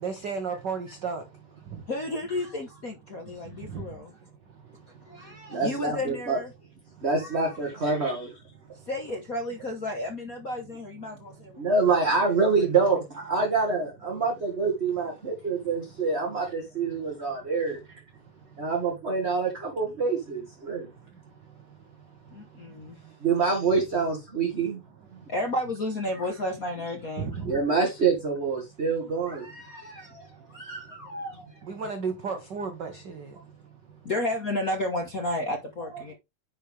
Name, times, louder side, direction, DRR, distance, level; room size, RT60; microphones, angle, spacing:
voice 1, 0.0-1.2 3.7-3.8 27.2-27.3 31.7-33.3, right 5 dB, 60° right, 1.1 m, -32 dB
voice 2, 1.9-4.1 5.0-6.5 7.1-7.6 8.8-11.6 12.6-12.7 22.3-23.0 25.3-27.4 29.3-31.5 34.0-36.1, left 1 dB, 65° left, 0.8 m, -33 dB
voice 3, 5.5-6.4 7.0-8.4 11.6-17.8 18.6-20.9 23.2-24.8 27.4-29.4, right 4 dB, 30° right, 1.6 m, -26 dB
9.9 x 4.6 x 3.5 m
omnidirectional pair, 3.4 m